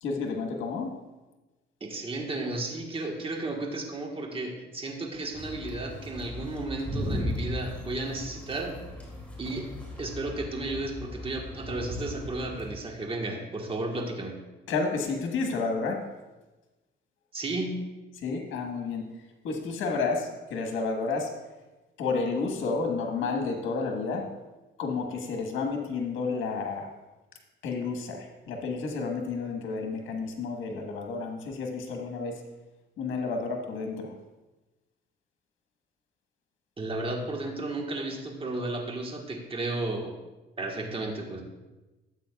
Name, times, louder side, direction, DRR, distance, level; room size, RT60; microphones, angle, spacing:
voice 1, 0.0-0.9 14.7-16.0 18.2-19.1 19.4-21.3 22.0-24.2 24.8-26.9 27.6-32.4 33.0-34.1, left 4 dB, 85° left, 3 dB, 1.4 m, -31 dB
voice 2, 1.8-8.8 9.4-9.7 10.0-14.3 17.3-17.8 36.8-40.1 40.6-41.4, right 2 dB, 25° right, 1 dB, 1.5 m, -33 dB
sound 1, 5.3-12.7, left 1 dB, 5° left, 2.6 m, -37 dB
12.0 x 8.3 x 2.4 m, 1.1 s
cardioid pair, 90°, 20 cm